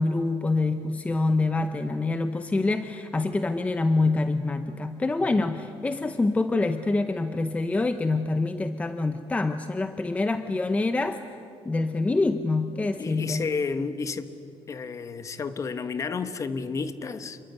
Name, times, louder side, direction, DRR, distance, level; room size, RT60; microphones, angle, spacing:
voice 1, 0.0-11.2 11.6-13.5, left 3 dB, 15° left, 0.7 m, -26 dB
voice 2, 13.0-14.3 14.7-17.4, left 5 dB, 30° left, 1.2 m, -31 dB
27.5 x 22.5 x 9.5 m
cardioid pair, 160°, 10 cm